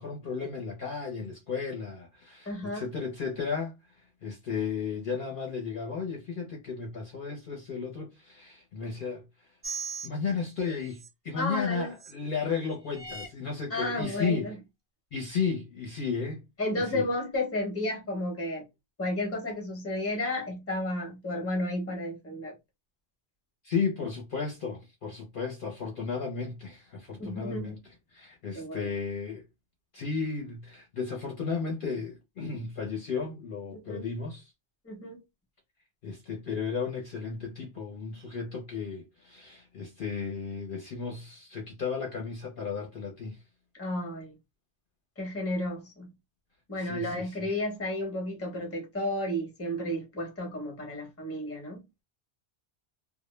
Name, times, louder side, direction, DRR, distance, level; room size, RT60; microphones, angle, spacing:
voice 1, 0.0-3.7 4.2-9.2 10.0-14.5 15.1-16.4 16.8-17.0 23.6-27.8 28.1-29.4 29.9-34.4 36.0-43.4 46.8-47.3, left 5 dB, 55° left, 0.7 m, -34 dB
voice 2, 2.5-2.9 11.4-11.9 13.7-14.6 16.6-18.6 19.0-22.5 27.2-27.8 28.5-28.9 33.7-34.1 34.8-35.2 43.8-44.4 45.2-46.1 46.7-51.8, left 1 dB, 15° left, 0.7 m, -32 dB
sound 1, 9.6-10.1 10.9-11.1 12.0-12.1 12.9-13.3 14.0-14.1, right 5 dB, 30° right, 0.3 m, -37 dB
2.0 x 2.0 x 3.0 m
omnidirectional pair, 1.2 m